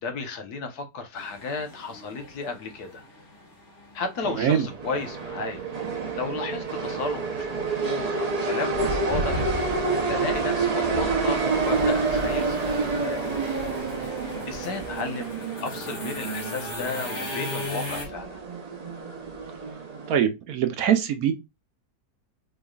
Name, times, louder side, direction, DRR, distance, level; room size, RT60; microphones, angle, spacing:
voice 1, 0.0-3.0 3.9-5.6 6.1-9.4 9.7-9.8 10.1-13.2 14.0-14.1 14.5-18.4, left 3 dB, 70° left, 1.5 m, -34 dB
sound 1, 1.2-18.1, left 1 dB, 45° left, 1.9 m, -40 dB
sound 2, 4.2-20.1, right 3 dB, 40° right, 0.5 m, -28 dB
voice 2, 20.1-21.3, right 9 dB, 70° right, 1.1 m, -22 dB
4.5 x 3.1 x 2.3 m
omnidirectional pair, 1.7 m